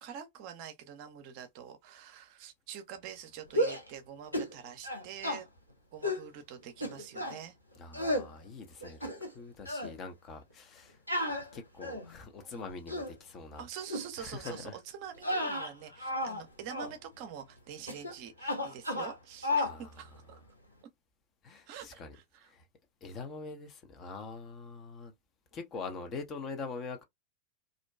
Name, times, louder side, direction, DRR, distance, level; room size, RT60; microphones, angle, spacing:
voice 1, 0.0-5.5 5.9-7.6 13.6-20.4 21.7-22.5, right 8 dB, 45° right, 0.5 m, -46 dB
sound 1, 3.5-3.9 4.3-4.5 4.8-5.4 6.0-6.3 6.8-7.4 7.9-8.3 8.8-9.4 9.7-9.9 11.1-12.1 12.7-13.1 13.9-14.1 14.4-14.7 15.2-16.4 16.7-16.9 17.9-18.1 18.4-19.2 19.4-19.8, left 1 dB, 90° left, 0.7 m, -33 dB
voice 2, 7.8-11.0 11.5-13.6 14.2-14.8 19.6-19.9 21.4-22.2 22.4-22.6 23.0-25.1 25.5-27.0, left 4 dB, 30° left, 0.6 m, -43 dB
2.5 x 2.2 x 2.2 m
figure-of-eight pair, 90°, 0 cm